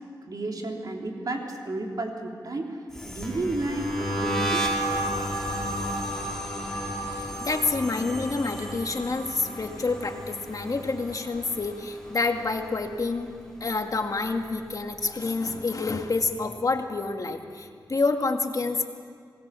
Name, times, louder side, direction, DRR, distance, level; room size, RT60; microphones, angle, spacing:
voice 1, 0.2-2.8 3.1-4.7 8.2-8.3, right 2 dB, 55° right, 1 dB, 3.5 m, -32 dB
sound 1, 2.9-12.1 12.4-12.8 13.1-14.7, right 1 dB, 5° left, 4.9 m, -32 dB
voice 2, 7.4-13.3 13.6-18.8, left 3 dB, 50° left, 4 dB, 2.0 m, -28 dB
27.0 x 20.0 x 7.0 m, 2.1 s
cardioid pair, 60°, 8 cm